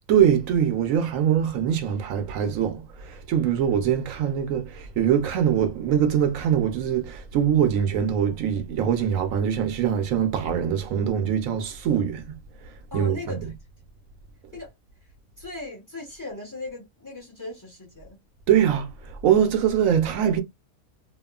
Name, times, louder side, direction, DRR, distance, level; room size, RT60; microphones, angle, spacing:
voice 1, 0.1-12.2 12.6-13.4 18.5-20.4, right 9 dB, 75° right, 0.9 m, -23 dB
voice 2, 12.9-13.5 14.5-14.7 15.4-18.2, left 3 dB, 15° left, 1.0 m, -38 dB
2.8 x 2.3 x 2.3 m
omnidirectional pair, 1.5 m